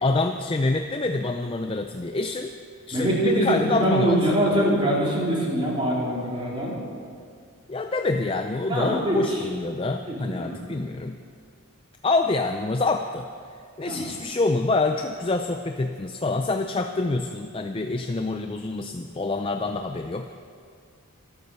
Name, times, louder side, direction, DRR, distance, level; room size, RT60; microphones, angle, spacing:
voice 1, 0.0-2.6 2.9-4.6 7.7-11.2 12.0-13.3 13.8-20.3, left 3 dB, 25° left, 6 dB, 0.4 m, -26 dB
voice 2, 2.9-6.8 8.7-9.4 10.1-10.6 13.8-14.1, right 1 dB, 25° right, -5 dB, 3.4 m, -24 dB
13.5 x 12.0 x 6.8 m, 2.2 s
head